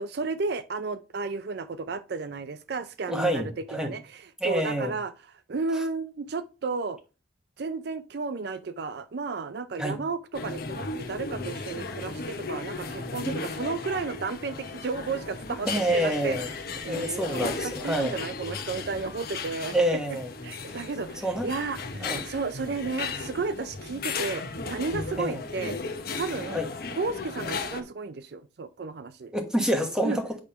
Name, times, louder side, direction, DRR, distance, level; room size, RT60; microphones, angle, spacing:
voice 1, 0.0-5.1 5.5-7.0 7.6-16.4 16.8-19.7 20.4-25.7 26.1-26.7 27.0-29.3 30.0-30.2, right 4 dB, 60° right, 0.4 m, -33 dB
voice 2, 3.1-3.9 4.4-4.9 9.8-10.0 15.7-16.5 16.9-18.2 19.7-20.3 20.7-20.8 21.2-21.5 22.0-22.2 25.2-25.4 26.5-26.7 29.3-30.4, right 1 dB, 5° right, 1.3 m, -27 dB
sound 1, 10.3-27.8, left 4 dB, 55° left, 1.0 m, -35 dB
8.7 x 3.5 x 5.7 m
head